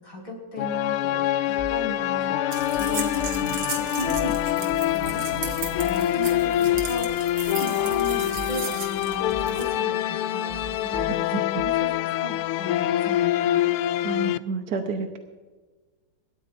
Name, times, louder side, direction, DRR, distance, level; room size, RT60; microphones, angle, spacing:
voice 1, 0.0-13.8, equal, 50° left, -2 dB, 5.9 m, -37 dB
sound 1, 0.6-14.4, left 13 dB, 80° left, 1.4 m, -25 dB
sound 2, 1.6-2.3 2.7-3.8 4.1-4.9 5.3-7.5 7.9-9.0 9.3-10.1 10.5-11.9, equal, 25° right, 3.2 m, -43 dB
sound 3, 2.5-9.8, right 4 dB, 80° right, 2.9 m, -36 dB
voice 2, 14.0-15.2, right 3 dB, 55° right, 4 dB, 1.4 m, -29 dB
26.0 x 13.5 x 2.6 m, 1.3 s
omnidirectional pair, 2.4 m